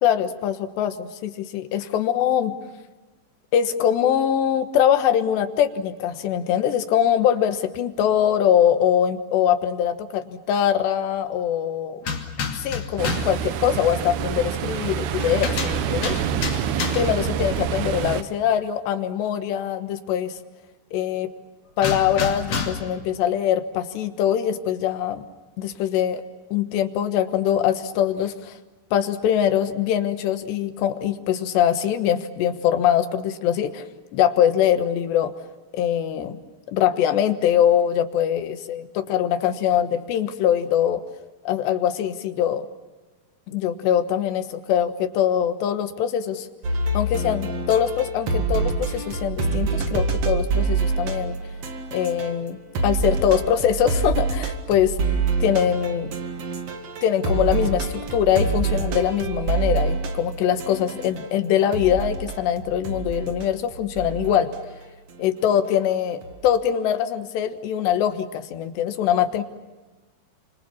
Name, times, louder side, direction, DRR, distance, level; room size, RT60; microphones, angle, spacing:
voice 1, 0.0-2.5 3.5-12.0 12.5-16.2 17.0-20.4 20.9-21.3 21.8-25.2 25.6-26.2 26.5-28.6 28.9-33.9 34.1-35.3 35.7-36.4 36.7-41.0 41.5-42.7 43.5-46.5 46.9-51.4 51.9-55.0 55.4-56.1 57.0-64.5 65.2-69.4, left 9 dB, 75° left, 8 dB, 3.4 m, -22 dB
sound 1, 12.0-13.4 15.2-17.3 21.8-23.0, left 5 dB, 40° left, 3.1 m, -29 dB
Ocean, 13.0-18.2, right 9 dB, 70° right, 2.9 m, -27 dB
sound 2, 46.6-52.5 52.7-61.3 61.7-64.9 66.2-66.5, right 4 dB, 50° right, 2.1 m, -26 dB
29.5 x 26.5 x 7.2 m, 1.2 s
omnidirectional pair, 5.1 m